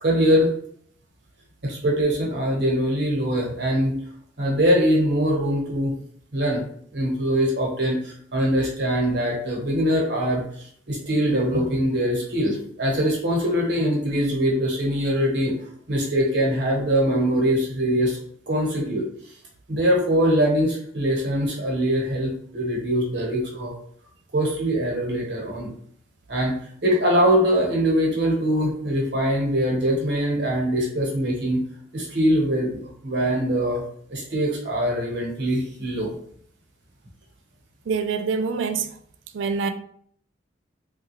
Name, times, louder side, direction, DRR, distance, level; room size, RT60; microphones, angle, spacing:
voice 1, 0.0-0.5 1.6-4.0 4.4-6.0 6.3-6.6 6.9-15.5 15.9-18.2 18.5-19.1 19.7-23.7 24.3-25.7 26.3-26.5 26.8-31.6 31.9-33.8 34.1-36.1, equal, 65° right, 1.1 m, -22 dB
voice 2, 37.9-38.9 39.3-39.7, right 5 dB, 80° right, 0.4 m, -25 dB
3.3 x 2.3 x 3.1 m
head